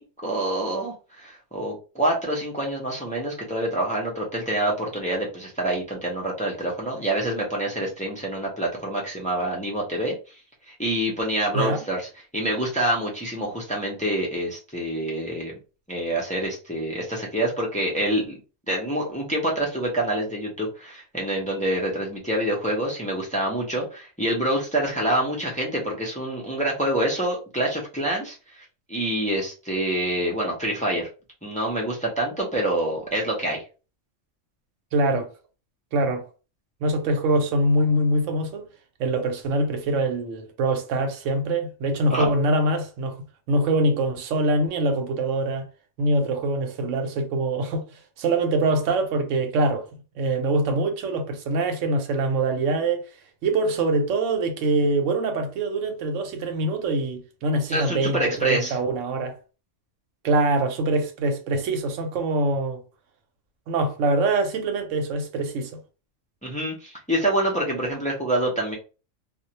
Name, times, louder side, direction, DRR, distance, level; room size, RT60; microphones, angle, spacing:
voice 1, 0.0-10.4 10.7-12.1 12.3-15.5 15.9-18.4 18.7-31.1 31.4-33.6 42.1-42.3 57.7-58.8 66.4-68.8, right 1 dB, 10° left, 0.4 m, -26 dB
voice 2, 11.5-11.8 34.9-35.3 35.9-36.2 36.8-38.7 39.0-43.2 43.5-45.7 46.0-49.9 50.2-53.1 53.4-59.4 60.2-62.8 63.7-65.8, right 2 dB, 85° right, 1.0 m, -24 dB
2.3 x 2.1 x 2.8 m
omnidirectional pair, 1.3 m